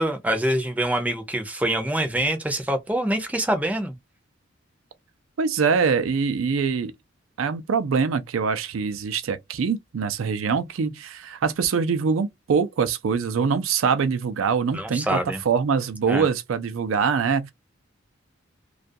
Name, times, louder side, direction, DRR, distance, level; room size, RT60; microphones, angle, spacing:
voice 1, 0.0-4.0 14.7-15.4 16.1-16.3, right 1 dB, 5° right, 0.5 m, -25 dB
voice 2, 5.4-6.9 7.4-15.2 15.5-17.5, right 5 dB, 80° right, 0.4 m, -24 dB
2.4 x 2.2 x 2.5 m
head